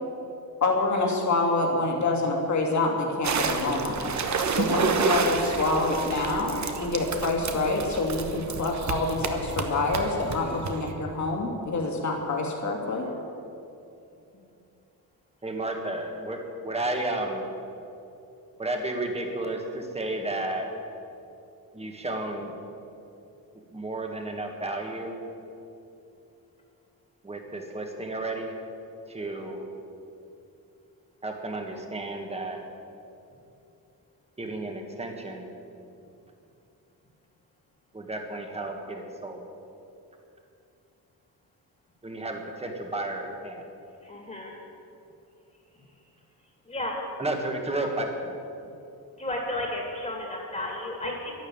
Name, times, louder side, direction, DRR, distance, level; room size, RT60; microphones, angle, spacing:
voice 1, 0.6-4.1 4.4-13.1, left 3 dB, 50° left, 0 dB, 2.6 m, -27 dB
sound 1, 3.2-10.9, right 5 dB, 50° right, 1.2 m, -29 dB
voice 2, 15.4-17.5 18.6-20.7 21.7-22.5 23.7-25.2 27.2-28.5 29.1-29.7 31.2-32.6 34.4-35.5 37.9-39.4 42.0-43.7 47.2-48.3, right 2 dB, 15° right, 3 dB, 1.7 m, -32 dB
voice 3, 44.0-44.5 46.7-47.0 49.2-51.3, left 1 dB, 20° left, -1 dB, 2.4 m, -33 dB
12.0 x 12.0 x 8.8 m, 2.7 s
wide cardioid pair, 165°, 36 cm